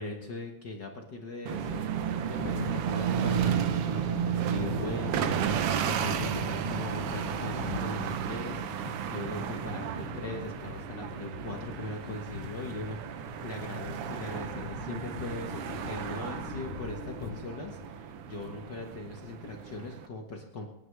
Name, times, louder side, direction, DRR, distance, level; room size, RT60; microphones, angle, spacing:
voice 1, 0.0-1.8 2.3-13.0 13.2-20.7, left 2 dB, 50° left, 1 dB, 1.4 m, -39 dB
Thunder, 1.5-19.9, left 9 dB, 85° left, 1.2 m, -43 dB
sound 1, 1.5-20.1, right 9 dB, 85° right, 1.2 m, -33 dB
27.5 x 9.7 x 3.3 m, 0.97 s
omnidirectional pair, 3.6 m